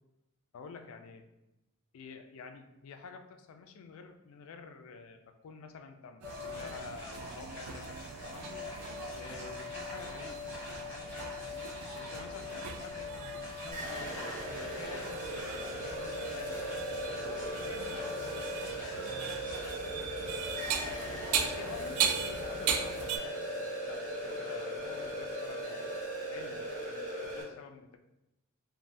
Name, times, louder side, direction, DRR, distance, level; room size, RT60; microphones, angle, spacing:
voice 1, 0.5-1.2 1.9-8.0 8.2-8.5 9.1-11.1 11.7-14.2 14.5-16.7 17.2-21.1 21.4-28.0, left 5 dB, 65° left, 6 dB, 0.3 m, -50 dB
sound 1, 6.2-26.0, left 4 dB, 10° left, 1.0 m, -43 dB
sound 2, 6.2-23.2, right 7 dB, 90° right, 0.3 m, -39 dB
sound 3, 13.7-27.4, right 1 dB, 40° right, 0.7 m, -39 dB
3.2 x 2.1 x 2.5 m, 0.95 s
head